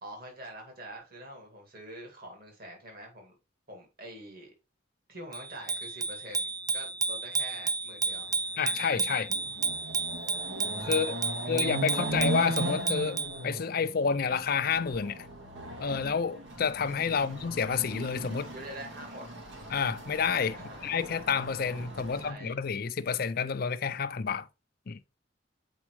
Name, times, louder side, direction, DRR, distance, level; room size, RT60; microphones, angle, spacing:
voice 1, 0.0-3.3 3.7-4.5 5.1-8.3 10.9-11.5 11.9-12.1 17.1-17.3 18.5-19.3 20.5-20.8 22.0-22.6, right 1 dB, 50° right, 2.4 m, -45 dB
Bicycle bell, 5.3-13.4, right 4 dB, 20° right, 0.3 m, -32 dB
Chatter / Car passing by / Motorcycle, 8.3-8.4 8.8-22.3, right 2 dB, 85° right, 1.9 m, -38 dB
voice 2, 8.6-9.3 10.8-11.2 11.5-15.3 15.8-18.5 19.7-24.5 24.9-25.0, left 6 dB, 50° left, 0.5 m, -29 dB
7.2 x 4.6 x 3.1 m
head